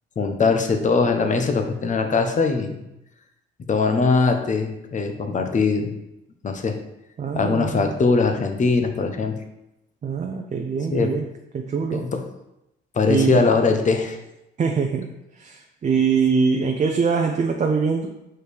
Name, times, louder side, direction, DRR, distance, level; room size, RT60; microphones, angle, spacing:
voice 1, 0.2-2.8 3.7-5.9 6.4-6.8 7.3-9.4 10.9-11.1 11.9-12.2 12.9-14.2, left 4 dB, 40° left, 6 dB, 0.8 m, -21 dB
voice 2, 7.2-7.8 10.0-11.2 11.5-12.1 13.1-13.5 14.6-15.1 15.4-18.1, right 5 dB, 35° right, 3 dB, 0.6 m, -23 dB
6.5 x 4.5 x 3.4 m, 0.88 s
cardioid pair, 90°, 20 cm